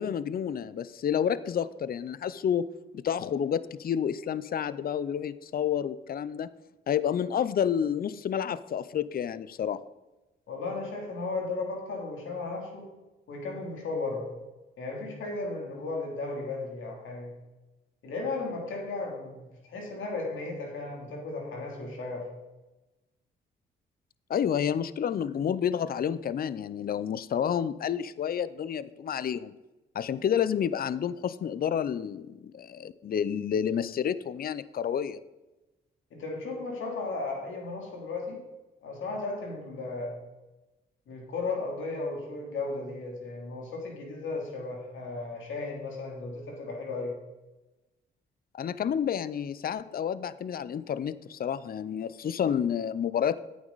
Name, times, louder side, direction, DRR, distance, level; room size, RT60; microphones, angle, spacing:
voice 1, 0.0-2.7 2.9-6.5 6.9-9.8 24.3-29.5 29.9-35.2 48.5-53.4, left 8 dB, 50° left, 16 dB, 0.5 m, -29 dB
voice 2, 10.5-12.9 13.3-14.3 14.8-17.3 18.0-22.2 36.1-38.4 38.8-40.1 41.1-47.1, left 3 dB, 75° left, 0 dB, 2.9 m, -35 dB
11.5 x 8.7 x 4.0 m, 1.1 s
supercardioid pair, 55°, 20 cm